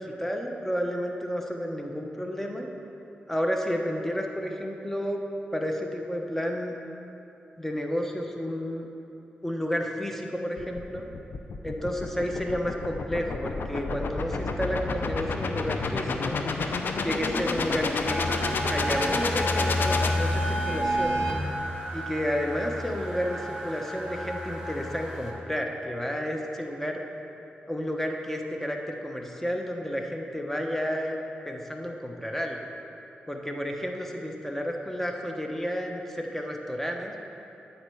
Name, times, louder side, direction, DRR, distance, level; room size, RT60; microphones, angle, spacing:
voice 1, 0.0-2.7 3.3-5.2 5.5-6.7 7.6-8.9 9.4-11.1 11.6-16.4 17.0-18.3 18.7-21.2 21.9-27.0 27.7-31.2 31.5-32.6 33.3-37.1, equal, 10° left, 2 dB, 1.1 m, -31 dB
sound 1, 10.6-20.9, left 4 dB, 70° left, 0.6 m, -30 dB
sound 2, 18.1-25.3, equal, 10° right, 1.8 m, -30 dB
8.9 x 4.3 x 7.0 m, 2.9 s
cardioid pair, 55°, 4 cm